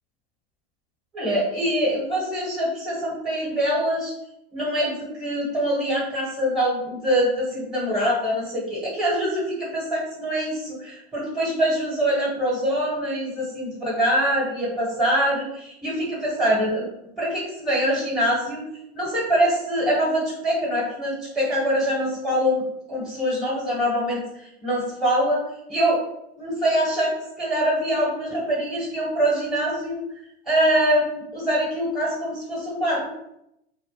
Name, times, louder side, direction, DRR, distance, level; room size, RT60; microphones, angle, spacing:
voice 1, 1.1-4.1 4.5-16.9 17.2-18.6 18.9-22.6 22.9-24.2 24.6-25.4 25.7-26.0 26.4-27.1 27.4-30.0 30.5-33.1, equal, ahead, -3 dB, 0.7 m, -24 dB
2.2 x 2.1 x 3.0 m, 0.80 s
hypercardioid pair, 110°, 32 cm